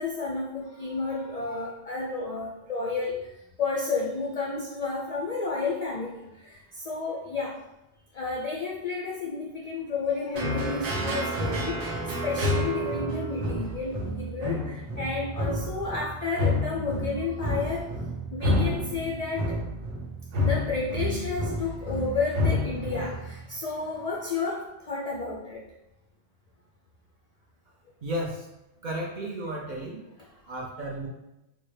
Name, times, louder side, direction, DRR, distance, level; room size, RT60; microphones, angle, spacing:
voice 1, 0.0-3.3 3.6-7.6 8.1-17.9 18.3-19.6 20.4-25.6 30.2-30.3, left 4 dB, 65° left, -3 dB, 0.4 m, -31 dB
sound 1, 10.3-23.5, left 1 dB, 80° right, 1.0 m, -29 dB
voice 2, 28.0-28.5 28.8-30.1 30.5-31.1, right 1 dB, 60° right, -2 dB, 0.5 m, -33 dB
3.7 x 2.1 x 3.1 m, 0.93 s
omnidirectional pair, 1.2 m